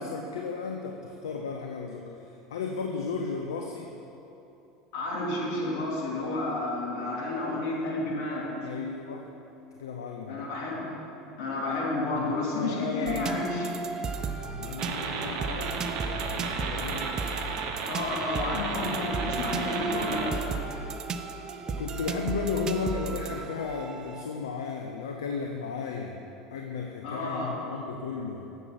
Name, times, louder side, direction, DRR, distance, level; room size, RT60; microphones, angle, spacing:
voice 1, 0.0-3.9 8.6-9.3 9.8-10.4 12.1-13.2 14.6-17.1 21.7-26.2 26.5-28.5, left 5 dB, 90° left, 3 dB, 0.6 m, -34 dB
voice 2, 4.9-8.7 10.3-11.0 11.4-13.7 17.9-20.4 27.0-27.6, left 2 dB, 70° left, -3 dB, 2.3 m, -31 dB
sound 1, 13.1-24.2, right 4 dB, 30° right, 0.6 m, -35 dB
sound 2, 14.8-20.3, right 5 dB, 60° right, 1.0 m, -34 dB
7.9 x 7.2 x 5.7 m, 2.9 s
hypercardioid pair, 90°, 2 cm